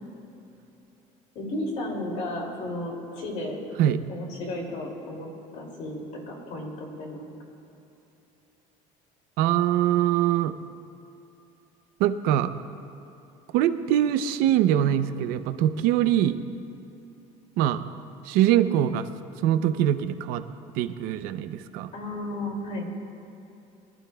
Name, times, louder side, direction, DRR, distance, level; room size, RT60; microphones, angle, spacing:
voice 1, 1.3-3.6 4.1-7.3 21.9-22.9, left 1 dB, 55° left, 0 dB, 2.6 m, -34 dB
voice 2, 9.4-10.5 12.0-12.5 13.5-16.4 17.6-17.9 18.2-19.1 19.4-20.4 20.8-21.9, right 11 dB, 75° right, 10 dB, 0.6 m, -23 dB
23.0 x 12.0 x 2.3 m, 2.8 s
cardioid pair, 165°, 15 cm